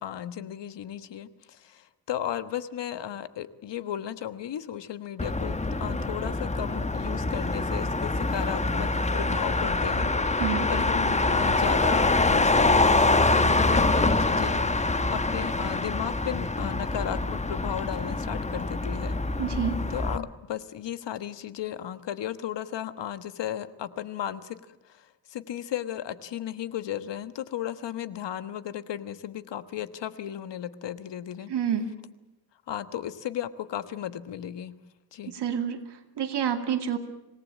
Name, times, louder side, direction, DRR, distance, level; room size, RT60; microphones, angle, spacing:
voice 1, 0.0-10.4 10.7-19.2 19.9-24.6 24.9-25.0 25.3-31.5 32.7-34.7 35.1-35.3, left 10 dB, 85° left, 13 dB, 1.4 m, -35 dB
Motor vehicle (road), 5.2-20.2, left 2 dB, 15° left, 1.1 m, -25 dB
voice 2, 10.4-10.7 19.4-19.8 31.5-31.9 35.3-37.0, right 8 dB, 75° right, 7 dB, 2.5 m, -28 dB
26.0 x 18.5 x 8.5 m, 0.99 s
wide cardioid pair, 130°, 42 cm